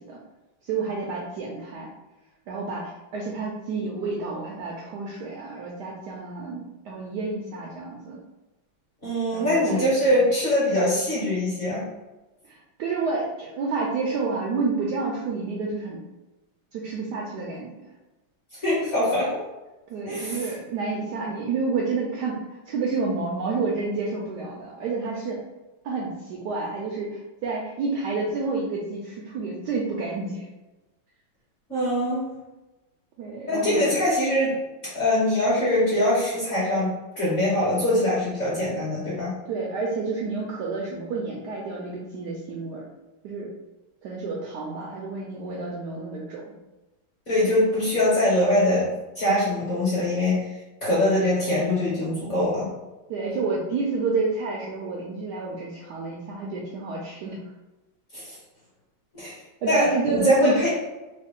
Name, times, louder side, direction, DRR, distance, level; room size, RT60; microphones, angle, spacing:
voice 1, 0.6-1.9 2.5-8.2 9.3-10.2 12.4-16.0 16.7-17.7 19.9-25.4 25.8-30.5 33.2-33.9 39.4-42.8 43.2-43.5 44.0-46.5 53.1-57.4 59.6-60.7, right 4 dB, 75° right, -3 dB, 0.9 m, -29 dB
voice 2, 9.0-11.8 18.6-19.3 20.1-20.5 31.7-32.2 33.5-34.6 34.9-39.3 47.3-50.5 50.8-52.7 58.1-58.4 59.1-59.4 59.7-60.7, left 1 dB, 45° left, -7 dB, 1.1 m, -23 dB
3.3 x 2.3 x 3.6 m, 1.1 s
omnidirectional pair, 2.2 m